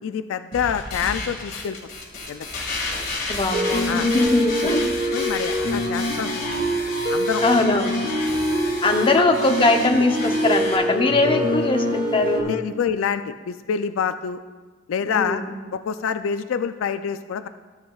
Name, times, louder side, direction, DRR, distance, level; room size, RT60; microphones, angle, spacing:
voice 1, 0.0-1.8 2.3-2.5 3.9-4.1 5.1-6.7 7.1-7.8 8.3-8.4 12.4-14.4 14.9-15.4 15.7-17.5, left 7 dB, 80° left, 10 dB, 0.3 m, -27 dB
sound 1, 0.5-10.8, left 3 dB, 45° left, 1.8 m, -32 dB
voice 2, 2.9-5.2 7.4-8.0 8.8-12.6 15.0-15.5, left 2 dB, 25° left, 4 dB, 0.7 m, -21 dB
sound 2, 3.5-12.4, equal, 40° right, 1.3 m, -25 dB
13.5 x 8.1 x 2.4 m, 1.3 s
head